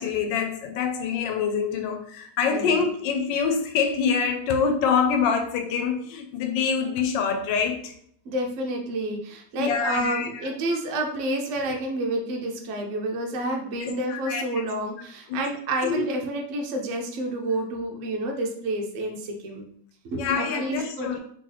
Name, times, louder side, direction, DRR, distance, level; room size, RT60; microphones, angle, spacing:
voice 1, 0.0-7.9 9.6-10.5 13.8-14.6 15.3-15.4 15.8-16.0 20.2-21.2, left 6 dB, 90° left, 6 dB, 1.3 m, -25 dB
voice 2, 8.2-19.7 20.0-21.2, right 1 dB, 65° right, 2 dB, 0.8 m, -29 dB
3.1 x 3.1 x 3.8 m, 0.64 s
omnidirectional pair, 1.9 m